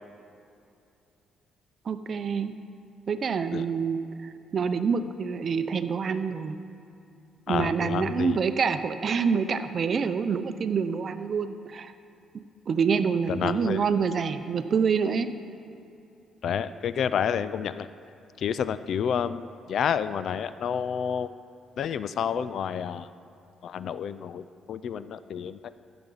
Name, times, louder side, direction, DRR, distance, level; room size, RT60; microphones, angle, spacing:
voice 1, 1.9-2.5 3.1-6.6 7.5-11.9 12.7-15.3, right 6 dB, 50° right, 10 dB, 0.6 m, -27 dB
voice 2, 7.5-8.4 13.3-13.8 16.4-17.9 18.4-21.3 21.8-23.1 23.6-25.7, left 8 dB, 65° left, 14 dB, 0.3 m, -29 dB
15.5 x 6.9 x 4.0 m, 2.7 s
cardioid pair, 90°, 0 cm